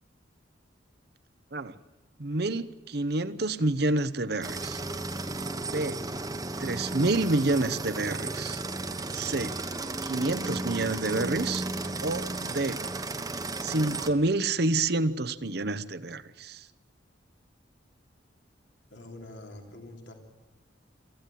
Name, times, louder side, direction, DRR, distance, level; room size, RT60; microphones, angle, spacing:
voice 1, 2.2-4.8 5.7-6.0 6.6-8.6 9.1-9.6 10.0-11.6 12.0-12.8 13.6-16.6, right 2 dB, 55° right, 13 dB, 0.9 m, -28 dB
sound 1, 4.4-14.1, right 2 dB, 20° right, 1.1 m, -34 dB
voice 2, 18.9-20.1, left 1 dB, 70° left, 2 dB, 3.4 m, -45 dB
23.5 x 15.0 x 9.3 m, 1.1 s
head